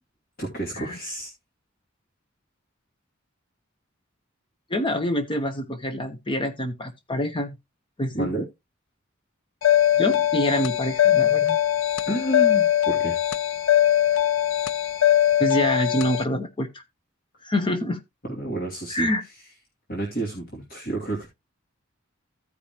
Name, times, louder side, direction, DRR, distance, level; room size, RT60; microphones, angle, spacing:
voice 1, 0.4-1.3 8.1-8.5 12.1-13.2 18.2-19.1 19.9-21.3, right 1 dB, 50° left, 2.5 m, -30 dB
voice 2, 4.7-7.6 8.0-8.3 10.0-11.6 15.4-16.8 17.4-18.0 18.9-19.2, equal, 25° left, 1.0 m, -26 dB
sound 1, 9.6-16.2, left 11 dB, 75° left, 0.5 m, -21 dB
15.0 x 5.1 x 2.9 m
head